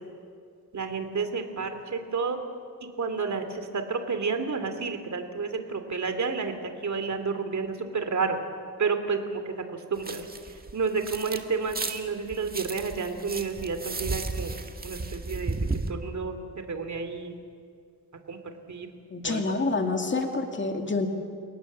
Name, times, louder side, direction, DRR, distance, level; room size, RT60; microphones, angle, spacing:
voice 1, 0.7-2.4 3.0-8.4 8.8-10.3 10.7-14.5 14.8-15.5 15.9-16.4 16.7-17.4 18.3-18.4 18.7-18.9 19.2-19.5, right 5 dB, 45° right, 7 dB, 2.8 m, -30 dB
sound 1, 10.0-11.4 11.7-15.9, right 3 dB, 25° right, 1.8 m, -34 dB
voice 2, 19.1-21.1, left 3 dB, 30° left, 4 dB, 2.4 m, -27 dB
29.5 x 18.5 x 7.5 m, 2.3 s
cardioid pair, 110°, 38 cm